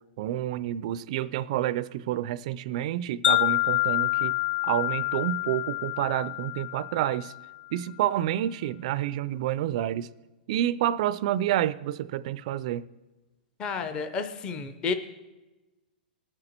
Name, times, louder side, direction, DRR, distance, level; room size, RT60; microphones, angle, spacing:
voice 1, 0.0-4.3 4.6-7.3 7.7-10.1 10.5-12.8, right 12 dB, 40° right, 0.4 m, -29 dB
Wind chime, 3.2-7.5, left 16 dB, 85° left, 0.7 m, -27 dB
voice 2, 13.6-14.9, left 5 dB, 15° left, 0.5 m, -31 dB
19.5 x 6.6 x 4.4 m
hypercardioid pair, 170°, 6 cm